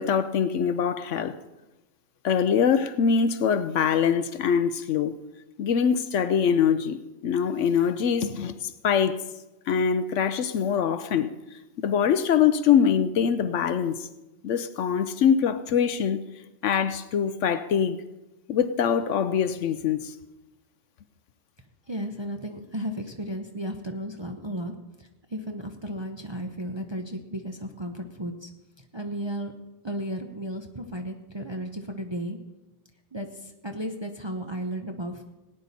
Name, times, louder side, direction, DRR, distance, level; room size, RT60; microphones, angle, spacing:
voice 1, 0.0-1.4 2.2-5.2 5.6-9.2 9.7-11.3 11.8-14.1 14.4-16.2 16.6-18.0 18.5-20.1, left 7 dB, 65° left, 0.9 m, -23 dB
voice 2, 21.9-24.7 25.0-28.5 28.8-29.5 29.8-32.4 33.1-35.2, equal, 25° right, 0.6 m, -34 dB
18.0 x 9.6 x 4.1 m
omnidirectional pair, 1.4 m